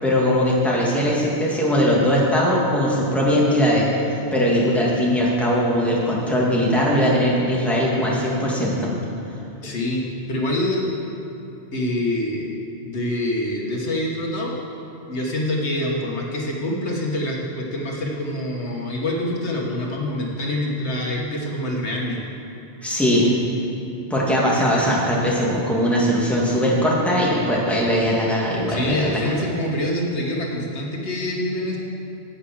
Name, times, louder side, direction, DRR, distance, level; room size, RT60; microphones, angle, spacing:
voice 1, 0.0-3.9 4.3-8.9 22.8-23.3 24.1-29.2, equal, ahead, -5 dB, 1.9 m, -20 dB
voice 2, 9.6-10.9 11.7-12.5 12.8-14.6 15.1-22.2 28.7-31.8, left 1 dB, 80° left, -1 dB, 1.7 m, -25 dB
9.3 x 8.6 x 7.3 m, 2.7 s
omnidirectional pair, 1.1 m